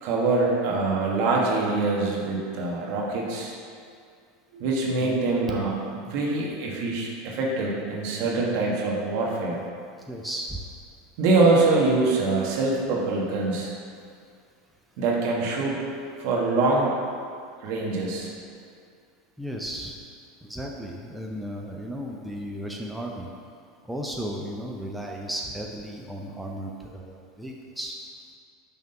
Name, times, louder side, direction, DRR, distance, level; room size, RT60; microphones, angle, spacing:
voice 1, 0.0-3.5 4.5-9.6 11.2-13.7 15.0-15.8 16.2-16.9 17.6-18.3, right 3 dB, 60° right, -3 dB, 1.3 m, -24 dB
voice 2, 10.1-10.6 19.4-20.0 20.4-23.3 23.8-28.0, equal, 5° right, -1 dB, 0.6 m, -35 dB
5.7 x 3.7 x 5.4 m, 2.2 s
hypercardioid pair, 90°, 0 cm